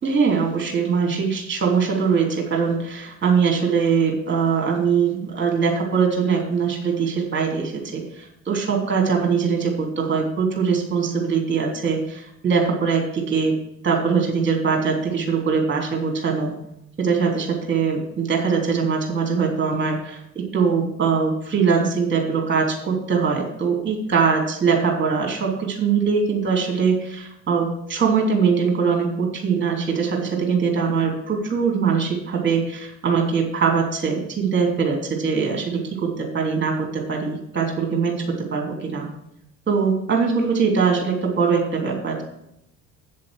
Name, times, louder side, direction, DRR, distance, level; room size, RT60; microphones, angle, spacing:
voice 1, 0.0-13.5 13.8-16.5 17.0-39.1 39.7-42.2, right 5 dB, 25° right, 1 dB, 3.1 m, -22 dB
8.0 x 7.4 x 6.4 m, 0.79 s
figure-of-eight pair, 60°, 41 cm